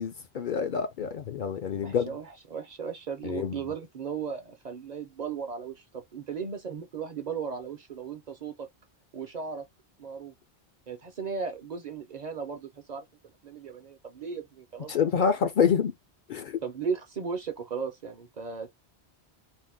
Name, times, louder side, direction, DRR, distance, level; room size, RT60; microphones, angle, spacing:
voice 1, 0.0-2.1 3.2-3.5 14.9-15.9 16.3-16.6, left 7 dB, 60° left, 0.6 m, -27 dB
voice 2, 1.8-8.7 9.1-9.6 10.0-10.3 10.9-13.0 13.4-15.3 16.6-18.7, right 6 dB, 50° right, 0.6 m, -36 dB
2.7 x 2.1 x 3.3 m
omnidirectional pair, 1.1 m